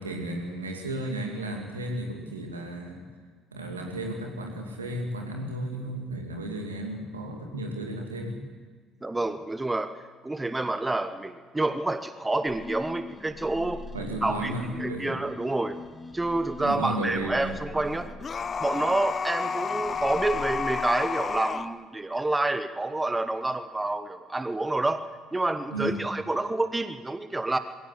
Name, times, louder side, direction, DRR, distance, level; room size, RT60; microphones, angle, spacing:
voice 1, 0.0-3.0 3.5-8.4 13.9-15.2 16.6-17.5 25.7-26.0, right 1 dB, 80° right, 2 dB, 2.6 m, -33 dB
voice 2, 9.0-10.0 10.2-13.8 14.2-15.8 16.1-18.1 18.6-25.0 25.3-27.6, right 2 dB, 15° right, 12 dB, 1.0 m, -28 dB
sound 1, 12.5-21.4, left 2 dB, 15° left, 2.1 m, -42 dB
sound 2, 18.2-21.7, left 5 dB, 35° left, 0.6 m, -31 dB
21.5 x 16.5 x 7.7 m, 1.5 s
figure-of-eight pair, 50°, 0 cm